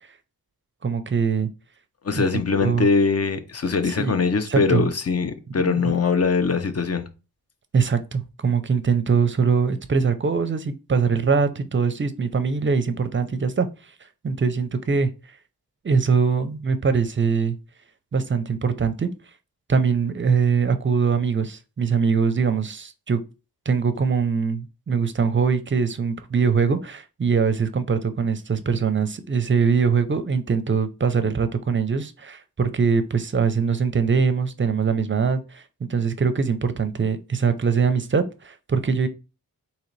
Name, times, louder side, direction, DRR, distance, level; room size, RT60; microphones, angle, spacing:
voice 1, 0.8-1.5 2.2-2.9 3.9-4.2 4.5-4.9 5.6-5.8 7.7-13.7 14.2-15.1 15.8-17.6 18.1-19.1 19.7-23.2 23.7-35.6 35.9-39.1, right 5 dB, 30° right, 0.5 m, -22 dB
voice 2, 2.0-7.0, left 5 dB, 40° left, 0.7 m, -22 dB
3.8 x 2.9 x 3.2 m
wide cardioid pair, 75°, 37 cm